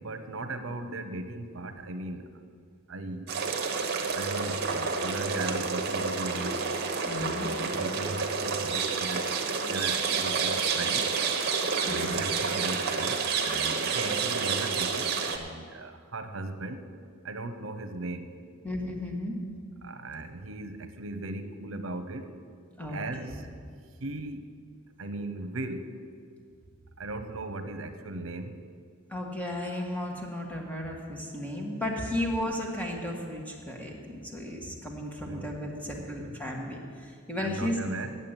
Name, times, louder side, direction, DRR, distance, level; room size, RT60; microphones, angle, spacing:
voice 1, 0.0-2.3 2.9-3.3 4.1-6.7 7.2-9.3 9.6-11.1 11.8-16.9 17.2-18.3 19.8-22.4 22.9-23.5 24.0-24.5 25.0-25.9 27.0-28.6 35.2-35.5 35.9-36.4 37.4-38.2, right 2 dB, 75° right, 9 dB, 0.9 m, -37 dB
sound 1, 3.3-15.4, right 5 dB, 55° right, 1.0 m, -29 dB
voice 2, 7.0-7.5 11.8-12.2 18.6-19.4 22.8-23.0 29.1-37.8, left 1 dB, 10° left, 0 dB, 1.6 m, -34 dB
8.5 x 8.1 x 9.0 m, 2.1 s
head